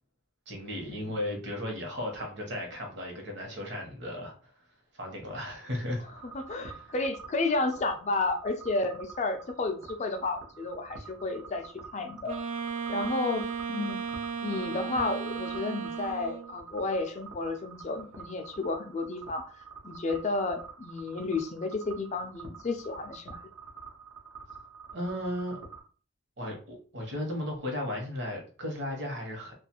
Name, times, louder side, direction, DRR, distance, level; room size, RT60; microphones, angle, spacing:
voice 1, 0.5-4.3 4.9-6.0 24.9-25.6 26.4-29.5, left 1 dB, 60° right, 1 dB, 0.9 m, -35 dB
sound 1, 6.1-25.8, right 5 dB, 80° right, 0.7 m, -48 dB
voice 2, 6.3-12.4 12.9-14.0 14.4-19.5 19.8-23.4, left 3 dB, 35° left, 7 dB, 0.4 m, -32 dB
Wind instrument woodwind instrument, 12.2-16.6, right 6 dB, 40° right, 0.3 m, -35 dB
2.4 x 2.4 x 2.9 m, 0.40 s
head